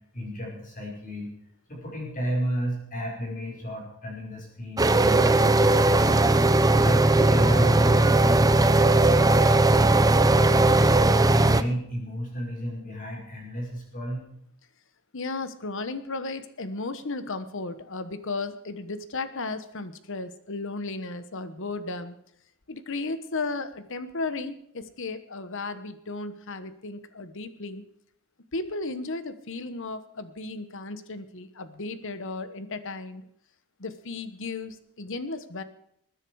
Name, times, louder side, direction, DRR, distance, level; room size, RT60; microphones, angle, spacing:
voice 1, 0.1-1.3 1.7-6.2 6.7-9.9 10.3-14.3, equal, 35° left, -1 dB, 5.3 m, -33 dB
sound 1, 4.8-11.6, right 2 dB, 15° right, 0.6 m, -19 dB
voice 2, 15.1-22.2 22.7-27.8 28.5-33.2 33.8-35.6, left 3 dB, 60° left, 12 dB, 1.2 m, -34 dB
20.5 x 9.9 x 4.7 m, 0.73 s
head